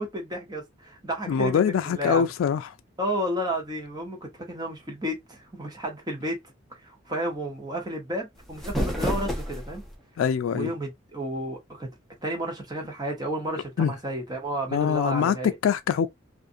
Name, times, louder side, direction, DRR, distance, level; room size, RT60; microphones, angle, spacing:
voice 1, 0.0-2.3 3.0-6.4 6.8-9.8 10.5-11.9 12.2-15.6, right 1 dB, 20° right, 0.9 m, -32 dB
voice 2, 1.3-2.7 10.2-10.7 13.8-13.9 14.7-16.1, left 7 dB, 80° left, 0.3 m, -24 dB
sound 1, 8.3-10.0, equal, ahead, 0.6 m, -30 dB
2.5 x 2.4 x 2.5 m
head